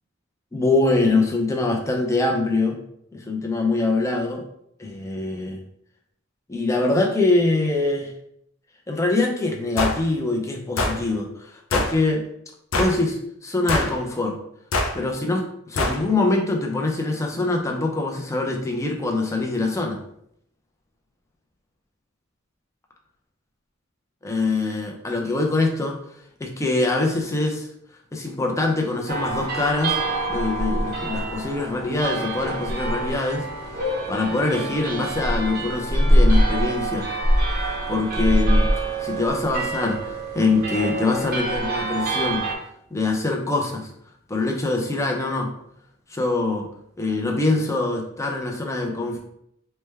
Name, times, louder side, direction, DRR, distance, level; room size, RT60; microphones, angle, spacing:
voice 1, 0.5-2.8 3.1-4.4 4.8-5.6 6.5-8.1 8.9-12.2 12.8-14.4 14.9-20.0 24.2-26.0 26.4-27.7 28.1-30.0 30.3-33.5 33.7-37.1 37.7-38.7 39.0-42.5 42.9-43.9 44.3-45.5 46.1-46.7 47.0-49.2, left 2 dB, 15° left, 1 dB, 0.5 m, -24 dB
sound 1, 9.8-10.0 10.8-11.0 11.7-11.9 12.7-13.0 13.7-14.0 14.7-14.9 15.8-16.0, left 2 dB, 80° left, 0.5 m, -23 dB
sound 2, 29.1-42.5, right 1 dB, 50° right, 0.7 m, -24 dB
3.2 x 2.1 x 3.3 m, 0.72 s
head